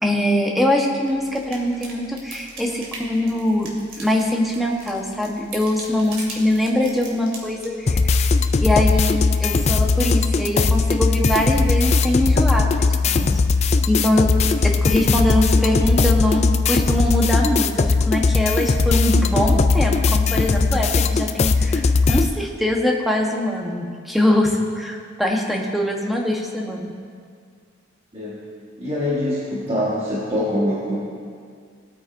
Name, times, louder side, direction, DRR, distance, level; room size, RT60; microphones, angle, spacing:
voice 1, 0.0-3.7 4.0-8.3 8.6-13.3 13.9-26.9, left 1 dB, ahead, -1 dB, 1.0 m, -22 dB
sound 1, 1.0-8.1, right 2 dB, 65° right, 2.4 m, -40 dB
sound 2, 7.9-22.3, left 4 dB, 30° left, 0.3 m, -18 dB
voice 2, 28.1-28.4 28.8-31.0, left 1 dB, 25° right, -8 dB, 1.5 m, -24 dB
20.0 x 8.9 x 2.6 m, 2.1 s
head